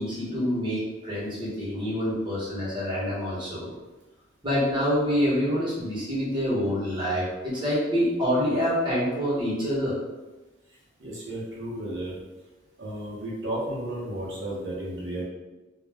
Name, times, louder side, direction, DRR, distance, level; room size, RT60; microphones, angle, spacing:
voice 1, 0.0-3.7 4.4-9.9, equal, 25° right, -8 dB, 1.0 m, -26 dB
voice 2, 11.0-12.2 12.8-15.2, right 1 dB, 75° right, -5 dB, 0.8 m, -33 dB
2.3 x 2.1 x 3.3 m, 1.1 s
head